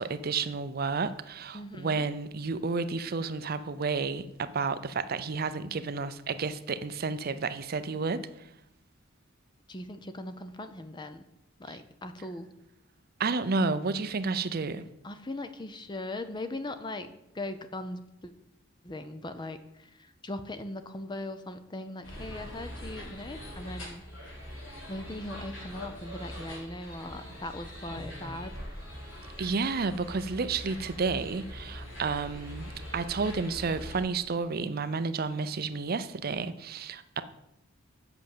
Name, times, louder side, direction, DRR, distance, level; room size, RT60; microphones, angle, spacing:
voice 1, 0.0-8.5 11.7-11.8 13.2-14.9 29.4-37.2, right 4 dB, 50° right, 0.5 m, -31 dB
voice 2, 1.5-2.1 9.7-11.2 11.6-12.5 15.0-18.3 18.8-24.0 24.9-28.5, left 1 dB, 20° left, 0.6 m, -39 dB
sound 1, 22.0-34.0, equal, 70° left, 4.3 m, -42 dB
7.9 x 6.3 x 7.2 m
head